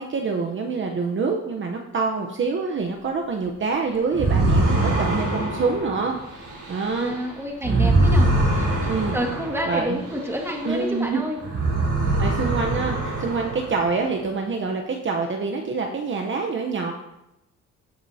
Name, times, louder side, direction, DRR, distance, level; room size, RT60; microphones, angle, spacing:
voice 1, 0.0-7.1 7.7-8.0 8.9-9.2 9.7-10.0 10.6-11.2 12.2-16.9, right 4 dB, 40° right, 2 dB, 0.9 m, -26 dB
sound 1, 4.1-11.0 11.4-14.1, right 2 dB, 85° right, 3.7 m, -23 dB
voice 2, 7.0-8.3 8.6-11.4, equal, 10° right, 0 dB, 2.0 m, -29 dB
14.0 x 5.9 x 2.8 m, 0.89 s
cardioid pair, 90°, 30 cm